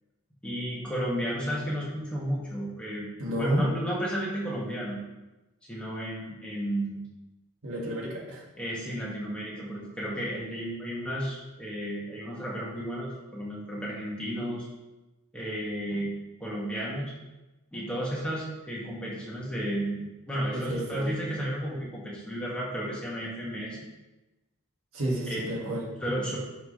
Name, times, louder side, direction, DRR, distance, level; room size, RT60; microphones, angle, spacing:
voice 1, 0.4-3.1 3.4-5.0 5.7-7.0 8.6-14.7 15.3-16.1 16.4-17.1 17.7-23.9 25.3-25.7 26.0-26.4, equal, 5° left, -6 dB, 2.2 m, -33 dB
voice 2, 3.2-3.7 7.6-8.4 20.5-21.1 24.9-25.9, right 1 dB, 80° right, -3 dB, 2.3 m, -31 dB
11.0 x 5.9 x 3.4 m, 1.1 s
head